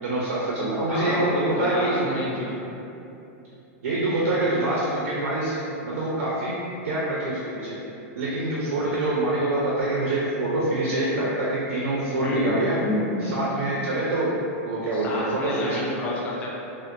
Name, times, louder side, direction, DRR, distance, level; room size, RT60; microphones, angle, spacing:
voice 1, 0.0-2.3 3.8-5.6 5.8-6.6 6.8-7.8 8.2-12.8 13.2-14.3 14.6-15.8, right 2 dB, 75° right, -6 dB, 0.6 m, -25 dB
voice 2, 0.9-2.5 12.2-12.5 12.8-13.3 14.9-16.5, left 1 dB, 15° left, -4 dB, 0.4 m, -29 dB
3.4 x 2.1 x 2.6 m, 2.8 s
supercardioid pair, 170°, 8 cm